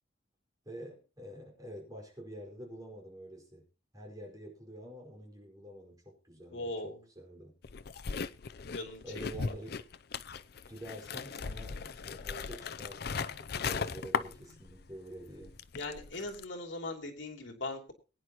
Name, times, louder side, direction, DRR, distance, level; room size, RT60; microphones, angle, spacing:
voice 1, 0.6-3.7 3.9-7.6 9.0-9.8 10.7-15.6, right 1 dB, 20° right, -1 dB, 5.0 m, -47 dB
voice 2, 6.5-7.0 8.7-9.0 15.8-17.9, left 2 dB, 75° left, 3 dB, 2.9 m, -39 dB
sound 1, 7.6-14.9 15.2-16.5, left 5 dB, 55° left, 0.6 m, -38 dB
22.5 x 9.8 x 3.0 m, 0.33 s
head